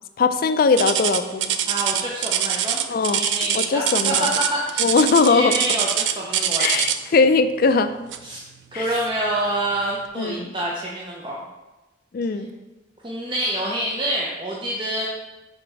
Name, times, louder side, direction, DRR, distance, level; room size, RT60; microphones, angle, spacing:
voice 1, 0.2-1.5 2.9-3.2 3.5-4.3 4.8-5.5 6.6-8.0 8.7-8.9 10.2-10.5 12.1-12.5, left 4 dB, 50° left, 10 dB, 0.4 m, -20 dB
sound 1, 0.8-7.2 8.1-8.4 8.9-9.0 9.7-9.8, right 10 dB, 80° right, 0.4 m, -23 dB
voice 2, 1.7-2.8 3.1-4.9 5.2-6.6 8.2-8.4 8.7-11.4 13.0-15.1, right 1 dB, 25° right, -4 dB, 0.7 m, -27 dB
5.0 x 4.3 x 4.9 m, 1.1 s
head